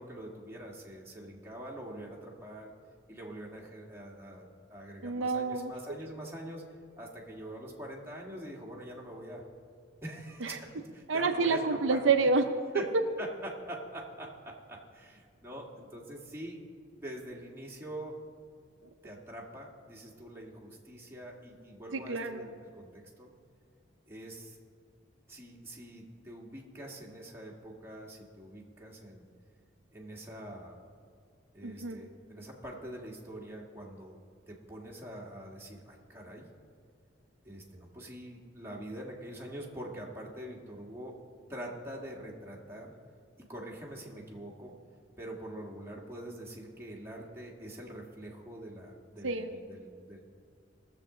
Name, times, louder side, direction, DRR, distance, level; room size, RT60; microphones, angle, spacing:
voice 1, 0.0-2.7 3.1-6.6 7.0-9.4 10.0-12.0 12.7-16.6 16.9-18.2 19.0-23.3 24.1-24.6 25.3-29.3 29.9-30.8 31.5-34.2 34.5-36.5 37.4-41.2 41.5-42.9 43.4-44.8 45.2-50.2, right 1 dB, 10° right, -3 dB, 1.6 m, -44 dB
voice 2, 5.0-5.7 10.4-10.6 11.1-12.4 21.9-22.5 31.6-32.0 49.2-49.5, right 4 dB, 75° right, 6 dB, 0.6 m, -28 dB
20.0 x 7.3 x 3.8 m, 2.1 s
head